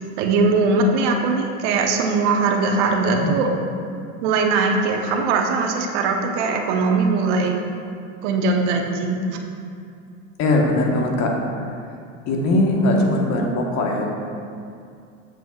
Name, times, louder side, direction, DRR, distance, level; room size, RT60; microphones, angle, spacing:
voice 1, 0.2-3.5 4.2-7.6 8.2-9.2, right 3 dB, 70° right, 2 dB, 1.0 m, -20 dB
voice 2, 10.4-11.3 12.3-14.1, left 1 dB, 50° left, 0 dB, 1.3 m, -20 dB
7.7 x 7.4 x 2.4 m, 2.4 s
supercardioid pair, 105°, 36 cm